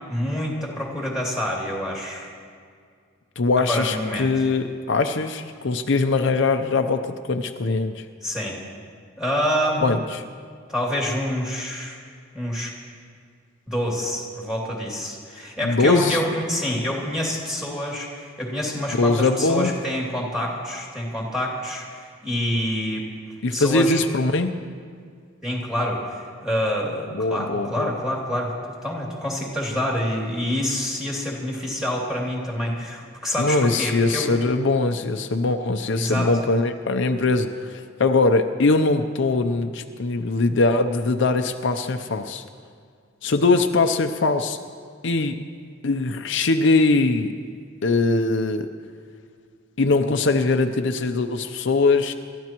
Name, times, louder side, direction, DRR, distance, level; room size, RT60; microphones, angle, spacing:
voice 1, 0.1-2.3 3.7-4.3 8.2-8.6 9.2-9.8 10.7-12.0 12.3-12.7 13.7-23.0 23.5-24.0 25.4-28.5 28.8-34.3 35.9-36.3, equal, ahead, -3 dB, 2.7 m, -27 dB
voice 2, 3.4-8.0 9.8-10.2 15.6-16.2 19.0-19.7 23.4-24.5 27.1-27.9 33.4-42.4 43.2-44.6 45.0-45.4 45.8-47.3 47.8-48.7 49.8-52.1, left 3 dB, 65° left, 6 dB, 0.6 m, -21 dB
27.5 x 13.5 x 3.0 m, 2.2 s
head